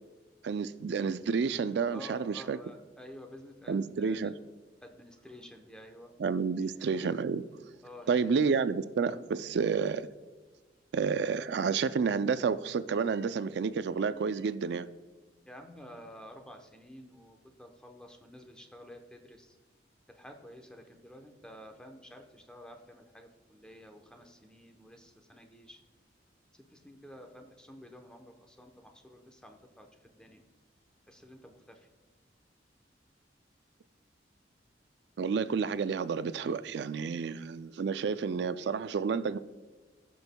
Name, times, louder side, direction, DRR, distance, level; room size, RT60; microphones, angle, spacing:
voice 1, 0.4-2.6 3.7-4.3 6.2-7.5 8.1-10.0 10.9-14.9 35.2-39.4, right 5 dB, 65° right, 0.3 m, -30 dB
voice 2, 1.9-4.3 4.8-6.1 6.6-6.7 7.8-8.3 15.4-19.6 20.1-25.8 26.5-30.4 31.1-31.9, equal, 5° left, 0.8 m, -51 dB
15.0 x 6.2 x 2.2 m
head